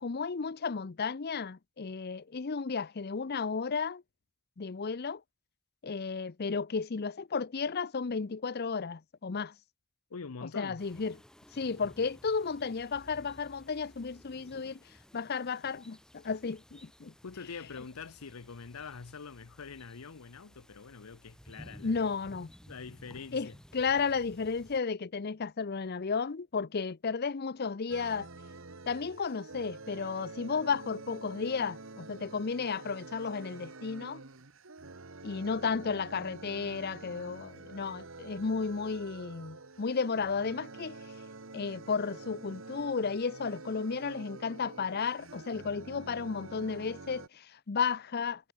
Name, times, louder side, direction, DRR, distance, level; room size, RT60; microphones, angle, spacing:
voice 1, 0.0-4.0 4.6-5.2 5.8-9.5 10.6-11.1 11.5-17.1 21.8-22.5 23.3-28.3 28.9-34.2 35.2-41.0 41.5-48.5, left 5 dB, 45° left, 0.6 m, -33 dB
voice 2, 10.1-10.8 17.2-22.0 22.7-23.6, left 5 dB, 80° left, 0.8 m, -45 dB
sound 1, 10.8-24.8, equal, 5° left, 0.5 m, -56 dB
sound 2, 27.9-47.3, right 3 dB, 60° right, 1.6 m, -47 dB
head